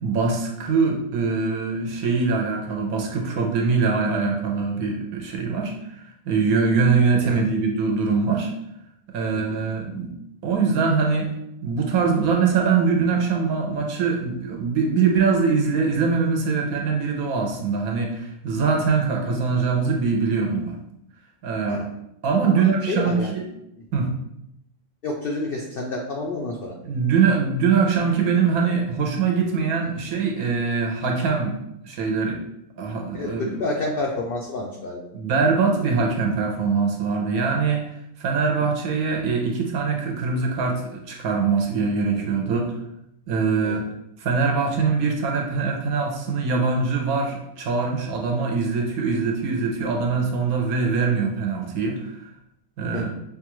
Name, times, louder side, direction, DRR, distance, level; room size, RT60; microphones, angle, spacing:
voice 1, 0.0-8.5 9.1-10.1 10.4-11.3 11.6-20.8 21.4-21.9 22.2-23.4 23.9-24.1 26.8-31.6 31.9-32.4 32.8-33.6 35.1-37.8 38.2-42.8 43.3-43.9 44.2-52.3 52.8-53.1, right 5 dB, 75° right, 1 dB, 1.2 m, -23 dB
voice 2, 22.5-23.3 25.0-26.7 33.1-35.1 43.6-43.8 52.9-53.1, left 2 dB, 80° left, 0 dB, 0.5 m, -29 dB
5.5 x 2.4 x 3.0 m, 0.80 s
omnidirectional pair, 1.6 m